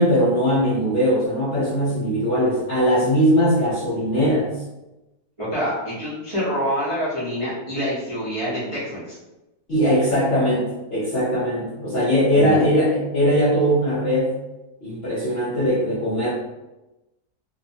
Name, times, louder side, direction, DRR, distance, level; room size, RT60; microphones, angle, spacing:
voice 1, 0.0-4.5 9.7-14.3 14.8-16.3, equal, 50° left, -8 dB, 0.8 m, -20 dB
voice 2, 5.4-9.2 12.3-12.7, equal, 30° right, -11 dB, 0.5 m, -26 dB
2.7 x 2.1 x 2.7 m, 1.0 s
omnidirectional pair, 1.7 m